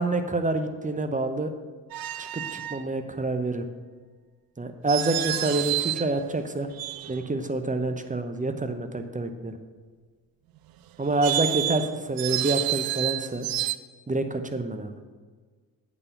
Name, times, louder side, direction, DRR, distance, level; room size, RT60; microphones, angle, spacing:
voice 1, 0.0-1.5 2.2-3.7 4.6-6.7 7.1-9.6 11.0-13.5 14.1-15.0, right 2 dB, 15° right, 7 dB, 0.8 m, -27 dB
sound 1, 1.9-2.9 4.9-6.1 6.7-7.4 11.0-13.8, right 14 dB, 50° right, 0.5 m, -29 dB
8.8 x 4.2 x 6.7 m, 1.5 s
hypercardioid pair, 40°, 48 cm